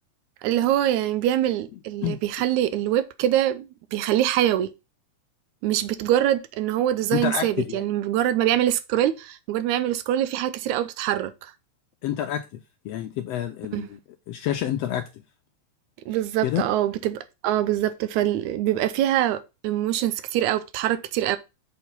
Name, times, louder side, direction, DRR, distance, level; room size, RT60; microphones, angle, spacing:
voice 1, 0.4-4.7 5.6-11.5 13.7-13.9 16.1-21.4, right 12 dB, 80° right, 2.0 m, -24 dB
voice 2, 7.1-7.8 12.0-12.4 12.8-14.0 14.3-15.1 16.4-16.6, left 11 dB, 80° left, 1.5 m, -27 dB
6.6 x 4.7 x 5.3 m
omnidirectional pair, 3.4 m